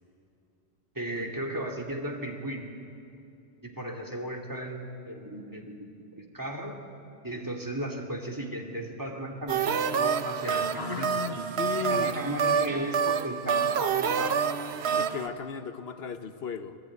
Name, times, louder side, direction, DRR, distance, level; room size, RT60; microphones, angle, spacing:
voice 1, 0.9-2.7 3.6-5.8 6.2-6.9 7.2-11.1 11.9-14.5, right 1 dB, 20° right, 3 dB, 2.5 m, -35 dB
sound 1, 9.5-15.3, right 6 dB, 80° right, 1.1 m, -28 dB
voice 2, 10.8-12.2 15.0-16.8, left 7 dB, 75° left, 9 dB, 1.2 m, -36 dB
27.5 x 19.5 x 9.3 m, 2.7 s
omnidirectional pair, 1.1 m